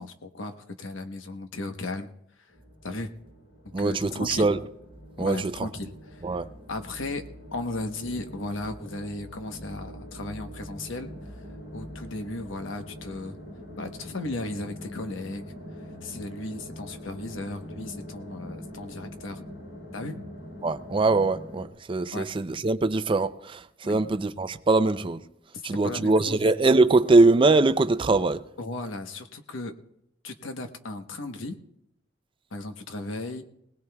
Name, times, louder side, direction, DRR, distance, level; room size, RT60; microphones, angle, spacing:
voice 1, 0.0-2.1 2.8-3.1 3.8-4.5 5.2-6.2 6.7-7.2 7.5-11.1 11.7-13.4 13.8-15.6 16.0-19.4 19.9-20.2 22.1-22.3 23.8-24.0 25.5-26.4 28.6-29.7 30.2-31.6 32.5-33.4, left 2 dB, 85° left, 1.0 m, -35 dB
sound 1, 2.5-21.7, equal, 65° left, 3.5 m, -43 dB
voice 2, 3.7-4.6 5.2-5.7 6.2-6.5 20.6-25.2 25.6-28.4, right 3 dB, 25° right, 0.4 m, -22 dB
20.5 x 18.5 x 2.3 m
head